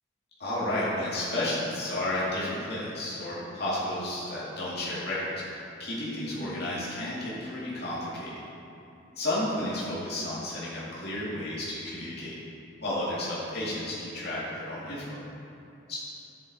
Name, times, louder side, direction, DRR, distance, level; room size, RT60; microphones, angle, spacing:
voice 1, 0.4-5.3 5.8-8.3 9.1-12.3 12.8-15.2 15.9-16.0, left 1 dB, 50° left, -9 dB, 2.4 m, -32 dB
9.9 x 7.9 x 4.2 m, 2.9 s
head